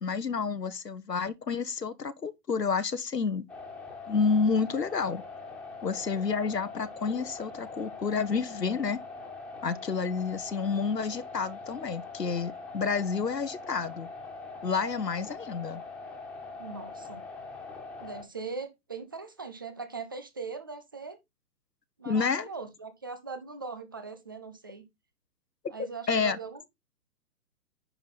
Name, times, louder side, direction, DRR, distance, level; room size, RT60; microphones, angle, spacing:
voice 1, 0.0-3.5 4.1-5.2 5.8-9.0 9.6-14.1 14.6-15.8 22.0-22.5 26.1-26.4, left 5 dB, 80° left, 1.0 m, -29 dB
sound 1, 3.5-18.2, left 4 dB, ahead, 1.9 m, -43 dB
voice 2, 16.6-17.2 18.0-21.2 22.0-24.9 25.7-26.6, right 4 dB, 15° right, 0.5 m, -40 dB
10.0 x 5.7 x 3.9 m
figure-of-eight pair, 125°, 48 cm